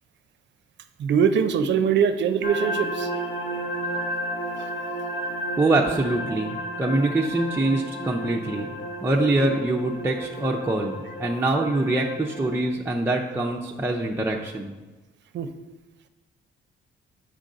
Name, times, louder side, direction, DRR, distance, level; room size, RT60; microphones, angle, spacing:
voice 1, 1.0-3.1 15.3-15.5, right 7 dB, 65° right, 10 dB, 0.5 m, -22 dB
sound 1, 2.4-12.7, right 1 dB, 60° left, 1.2 m, -32 dB
voice 2, 5.6-8.7 9.0-14.7, right 2 dB, 10° right, -1 dB, 0.6 m, -24 dB
7.5 x 5.1 x 3.8 m, 1.2 s
cardioid pair, 90°, 20 cm